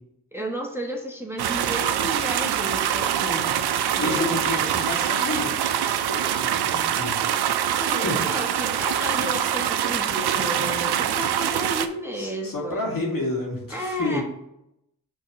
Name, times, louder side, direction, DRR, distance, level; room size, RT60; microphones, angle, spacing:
voice 1, 0.3-3.5 3.9-4.4 7.8-13.0 13.7-14.2, equal, 5° right, 0 dB, 1.2 m, -32 dB
sound 1, 1.4-11.9, right 9 dB, 90° right, 0.5 m, -24 dB
voice 2, 4.0-7.2 8.0-8.2 12.1-14.2, left 2 dB, 60° left, -2 dB, 2.2 m, -30 dB
5.4 x 3.9 x 5.4 m, 0.82 s
cardioid pair, 45°, 38 cm